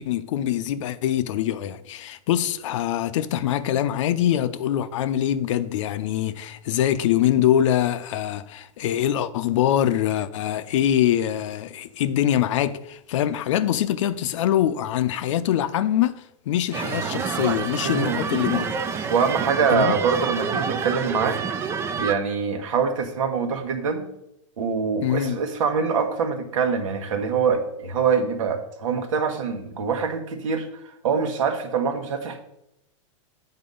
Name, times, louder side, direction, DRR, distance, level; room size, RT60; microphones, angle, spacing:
voice 1, 0.0-18.8 19.7-20.0 25.0-25.4, left 11 dB, 70° left, 0.6 m, -24 dB
sound 1, 16.7-22.1, right 6 dB, 15° right, 0.3 m, -28 dB
voice 2, 17.8-18.3 19.1-21.4 22.0-24.1 24.6-30.7 31.0-32.4, right 6 dB, 80° right, 1.3 m, -24 dB
8.7 x 4.0 x 5.3 m
supercardioid pair, 155°, 17 cm